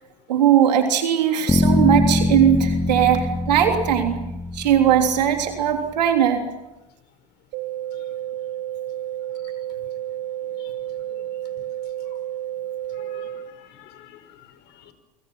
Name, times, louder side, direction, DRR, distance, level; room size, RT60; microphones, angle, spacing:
voice 1, 0.3-4.2 4.5-6.5, right 9 dB, 85° right, 4 dB, 3.5 m, -19 dB
sound 1, 1.5-5.6, left 2 dB, 10° left, 2.5 m, -23 dB
sound 2, 7.5-13.5, right 12 dB, 55° right, 1.6 m, -31 dB
voice 2, 12.9-14.9, left 11 dB, 55° left, 10 dB, 5.0 m, -48 dB
28.0 x 26.0 x 6.0 m, 0.98 s
hypercardioid pair, 85°, 21 cm